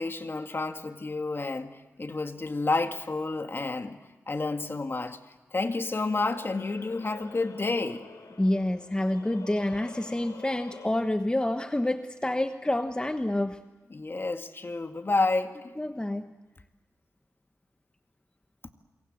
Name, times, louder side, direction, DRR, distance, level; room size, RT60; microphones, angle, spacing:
voice 1, 0.0-4.0 4.3-5.2 5.5-8.1 13.9-15.7, left 3 dB, 40° left, 7 dB, 1.9 m, -30 dB
sound 1, 5.5-10.9, left 4 dB, 80° left, 3.3 m, -48 dB
voice 2, 8.4-13.6 15.8-16.3, left 1 dB, 15° left, 8 dB, 1.1 m, -28 dB
27.5 x 23.5 x 7.9 m, 1.1 s
cardioid pair, 55°, 6 cm